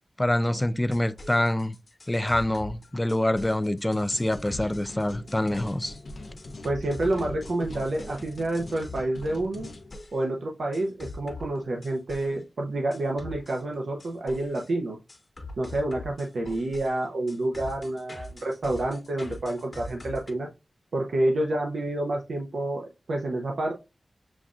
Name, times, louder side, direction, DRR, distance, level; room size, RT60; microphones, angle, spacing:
voice 1, 0.2-1.7 2.1-5.9, left 1 dB, 15° left, 0.3 m, -26 dB
sound 1, 0.8-10.2 10.7-12.4 12.9-14.7 15.1-20.3, left 2 dB, 55° left, 1.1 m, -43 dB
sound 2, 3.9-9.9, left 2 dB, 70° left, 0.7 m, -42 dB
voice 2, 6.6-9.7 10.1-15.0 15.6-20.5 20.9-23.7, right 1 dB, 80° right, 0.7 m, -28 dB
7.1 x 2.5 x 2.4 m
wide cardioid pair, 70°, 0 cm